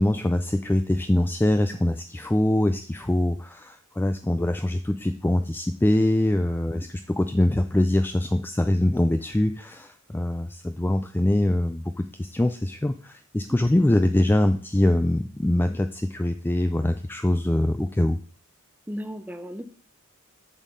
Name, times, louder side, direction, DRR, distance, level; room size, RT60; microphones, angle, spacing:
voice 1, 0.0-18.2, left 1 dB, 10° left, 8 dB, 0.4 m, -23 dB
voice 2, 18.9-19.6, equal, 5° right, 10 dB, 0.7 m, -35 dB
7.3 x 6.4 x 5.3 m, 0.44 s
head